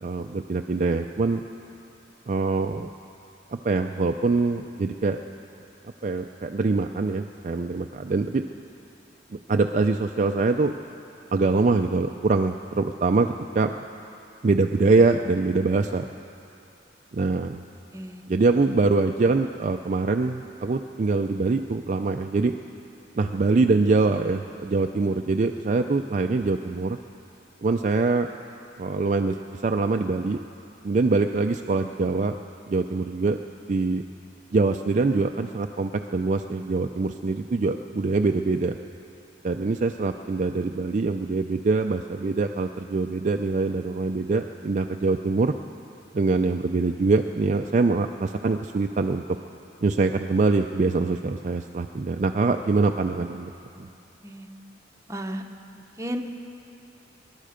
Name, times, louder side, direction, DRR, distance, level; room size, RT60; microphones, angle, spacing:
voice 1, 0.0-1.4 2.3-2.9 3.5-5.2 6.0-8.4 9.5-10.7 11.3-13.7 14.4-16.0 17.1-17.6 18.3-22.5 23.1-27.0 27.6-28.3 28.8-29.4 29.6-30.4 30.8-32.4 32.7-33.4 33.7-34.0 34.5-38.8 39.4-45.5 46.1-49.2 49.8-53.5 53.8-53.9, right 3 dB, 40° right, 5 dB, 0.4 m, -24 dB
voice 2, 17.9-18.2 53.7-53.9 54.2-54.5 55.1-55.4 55.7-56.2, equal, 15° right, 4 dB, 0.8 m, -34 dB
24.5 x 11.5 x 5.1 m, 2.6 s
head